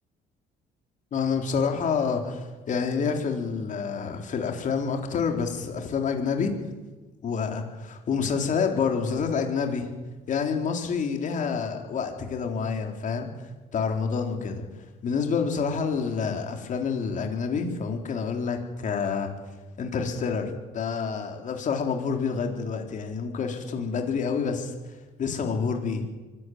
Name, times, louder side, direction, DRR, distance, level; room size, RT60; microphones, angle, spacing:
voice 1, 1.1-6.5 7.2-9.9 10.3-13.3 13.7-14.6 15.0-19.3 19.8-24.7 25.2-26.0, left 5 dB, 50° left, 4 dB, 3.8 m, -28 dB
24.0 x 12.5 x 9.6 m, 1.2 s
cardioid pair, 110°, 17 cm